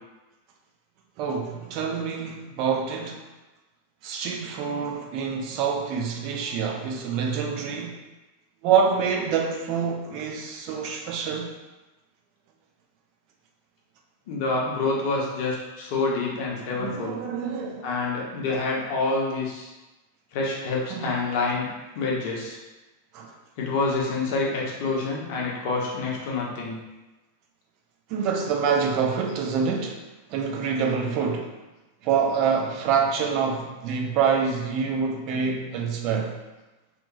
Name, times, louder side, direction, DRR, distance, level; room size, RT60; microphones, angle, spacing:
voice 1, 1.2-3.2 4.0-8.0 8.6-11.5 16.8-17.9 20.9-21.1 23.1-23.3 28.1-30.0 30.3-31.5 32.0-36.4, right 6 dB, 40° right, 2 dB, 0.3 m, -26 dB
voice 2, 14.3-17.2 17.8-19.7 20.3-21.7 21.9-22.6 23.6-26.8, left 3 dB, 45° left, -3 dB, 0.6 m, -27 dB
2.8 x 2.1 x 2.5 m, 1.1 s
figure-of-eight pair, 90°, 0 cm